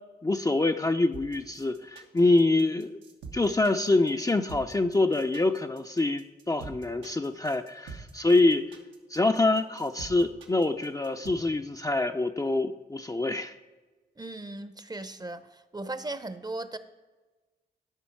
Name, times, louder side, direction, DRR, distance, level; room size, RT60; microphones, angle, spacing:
voice 1, 0.2-3.0 3.3-8.7 9.1-13.5, left 2 dB, 20° left, 6 dB, 0.5 m, -25 dB
sound 1, 1.1-11.3, right 5 dB, 85° right, 1.1 m, -45 dB
voice 2, 14.2-15.5 15.7-16.8, right 2 dB, 20° right, 12 dB, 0.7 m, -37 dB
13.0 x 5.4 x 4.6 m, 1.2 s
supercardioid pair, 45°, 19 cm